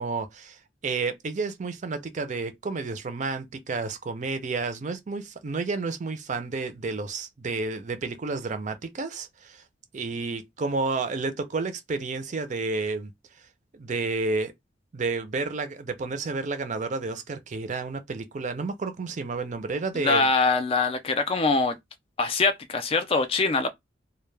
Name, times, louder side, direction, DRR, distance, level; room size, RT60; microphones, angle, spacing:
voice 1, 0.0-9.6 9.9-13.1 13.7-14.5 14.9-20.3, right 3 dB, 40° right, 0.4 m, -31 dB
voice 2, 19.9-21.8 22.2-23.7, left 4 dB, 30° left, 0.4 m, -23 dB
2.2 x 2.1 x 3.1 m
head